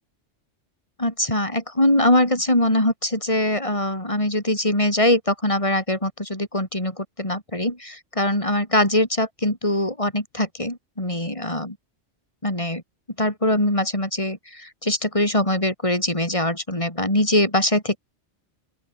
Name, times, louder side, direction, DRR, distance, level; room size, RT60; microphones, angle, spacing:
voice 1, 1.0-11.8 12.4-12.8 13.2-18.0, left 1 dB, 25° left, 6.4 m, -22 dB
open air
omnidirectional pair, 1.2 m